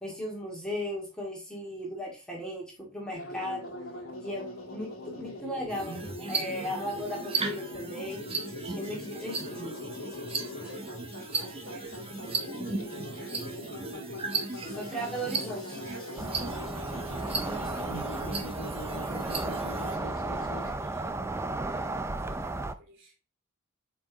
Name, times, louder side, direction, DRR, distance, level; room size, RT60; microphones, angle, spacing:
voice 1, 0.0-3.7 4.2-8.2 8.7-9.7 14.8-15.8 17.4-17.7, equal, 5° left, -3 dB, 2.1 m, -36 dB
sound 1, 3.1-20.7, left 1 dB, 80° left, 1.6 m, -42 dB
sound 2, 5.7-20.0, right 4 dB, 30° right, 0.9 m, -37 dB
voice 2, 10.6-13.3 14.4-15.0 15.8-16.7 18.2-23.1, right 2 dB, 60° right, 1 dB, 2.8 m, -52 dB
sound 3, 16.2-22.7, right 2 dB, 15° right, 0.4 m, -34 dB
7.3 x 4.5 x 2.9 m, 0.34 s
head